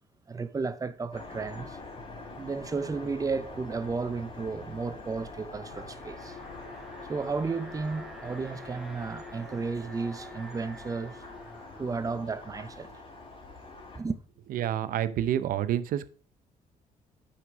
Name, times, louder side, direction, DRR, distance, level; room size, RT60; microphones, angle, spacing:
voice 1, 0.3-1.8 2.3-6.4 7.0-11.2 11.8-12.9 13.9-14.2, right 4 dB, 25° right, 0.6 m, -33 dB
sound 1, 1.1-14.0, left 3 dB, 35° left, 1.8 m, -45 dB
Alarm, 5.9-13.0, equal, ahead, 1.2 m, -48 dB
voice 2, 14.5-16.1, right 11 dB, 70° right, 0.6 m, -28 dB
5.9 x 5.8 x 4.6 m
cardioid pair, 100°, 15 cm